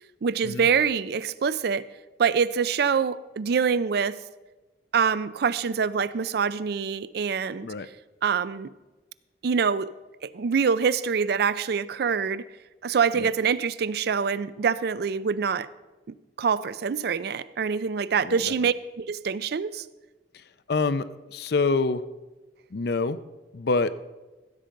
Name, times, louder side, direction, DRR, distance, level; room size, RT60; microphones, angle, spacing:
voice 1, 0.2-1.8 2.2-4.2 4.9-7.7 8.2-8.7 9.4-9.9 10.2-12.4 12.8-15.7 16.4-19.8, right 6 dB, 60° right, 16 dB, 0.4 m, -25 dB
voice 2, 18.2-18.5 20.7-22.0 22.7-23.2 23.5-23.9, left 3 dB, 60° left, 13 dB, 0.5 m, -26 dB
15.0 x 7.5 x 5.2 m, 1.2 s
head